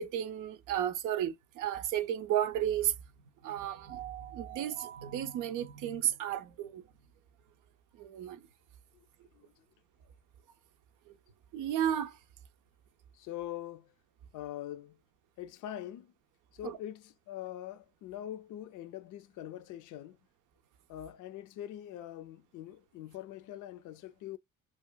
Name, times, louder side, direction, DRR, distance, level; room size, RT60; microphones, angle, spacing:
voice 1, 0.0-2.9 3.4-6.8 8.0-8.4 11.5-12.2 16.6-16.8, right 10 dB, 90° right, 0.6 m, -33 dB
voice 2, 13.1-13.9 14.3-15.0 15.4-16.1 16.5-20.2 20.9-24.4, left 12 dB, 85° left, 0.5 m, -43 dB
2.8 x 2.4 x 2.2 m
cardioid pair, 90°, 30 cm